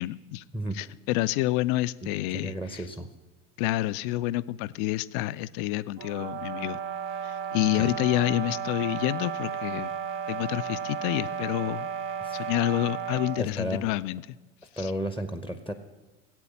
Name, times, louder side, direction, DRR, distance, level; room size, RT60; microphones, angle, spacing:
voice 1, 0.0-0.4 0.7-2.8 3.6-6.8 7.2-9.9 10.3-11.9 12.3-14.2 14.8-14.9, left 16 dB, 45° left, 16 dB, 0.5 m, -28 dB
voice 2, 2.0-3.1 7.8-8.0 12.2-12.4 13.4-13.9 14.8-15.7, right 1 dB, 5° right, 9 dB, 0.9 m, -33 dB
sound 1, 6.0-13.5, right 7 dB, 35° right, 0.7 m, -34 dB
17.0 x 8.4 x 7.2 m, 1.2 s
figure-of-eight pair, 80°, 37 cm